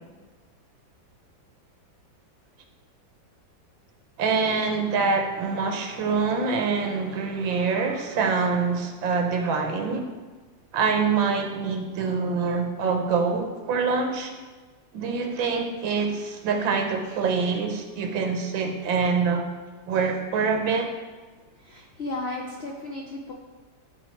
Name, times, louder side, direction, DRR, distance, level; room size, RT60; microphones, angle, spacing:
voice 1, 4.2-10.1 10.7-14.3 14.9-19.5 19.9-20.9, right 5 dB, 90° right, 4 dB, 1.8 m, -25 dB
voice 2, 21.7-23.3, left 2 dB, 70° left, -1 dB, 0.6 m, -34 dB
11.5 x 4.0 x 4.5 m, 1.4 s
omnidirectional pair, 2.0 m